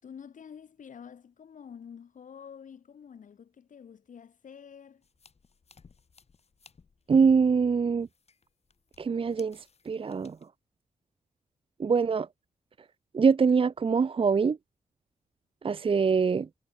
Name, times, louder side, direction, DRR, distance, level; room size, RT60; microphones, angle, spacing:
voice 1, 0.0-5.0, left 7 dB, 70° left, 3.8 m, -48 dB
sound 1, 5.0-10.5, left 5 dB, 50° left, 8.0 m, -61 dB
voice 2, 7.1-8.1 9.0-9.6 9.9-10.4 11.8-12.3 13.1-14.6 15.6-16.5, right 5 dB, 40° right, 0.8 m, -23 dB
cardioid pair, 90°, 14 cm